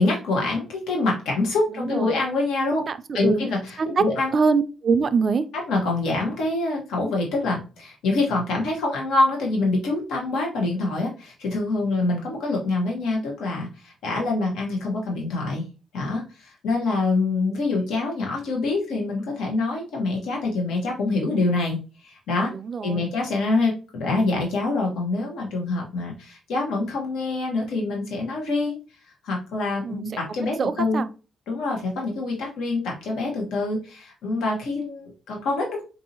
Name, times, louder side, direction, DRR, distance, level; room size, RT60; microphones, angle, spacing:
voice 1, 0.0-2.8 3.1-4.4 5.7-15.7 15.9-22.5 22.8-28.8 29.2-31.0 31.5-35.8, left 3 dB, 85° left, 1.1 m, -25 dB
voice 2, 2.7-3.4 4.3-5.4 22.5-23.1 29.8-30.0 30.6-31.1, right 5 dB, 45° right, 0.4 m, -24 dB
4.1 x 2.7 x 2.8 m
cardioid pair, 90°, 0 cm